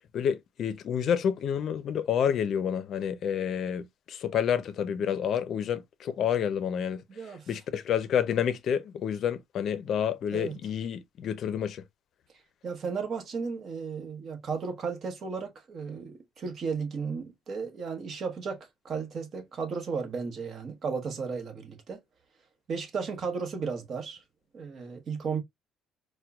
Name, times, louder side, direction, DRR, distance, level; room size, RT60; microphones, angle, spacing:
voice 1, 0.1-7.0 7.5-11.8, left 8 dB, 55° left, 0.5 m, -29 dB
voice 2, 7.1-7.5 10.3-10.6 12.6-22.0 22.7-24.2 24.5-25.4, right 5 dB, 45° right, 1.0 m, -34 dB
4.3 x 2.2 x 2.3 m
cardioid pair, 125°, 0 cm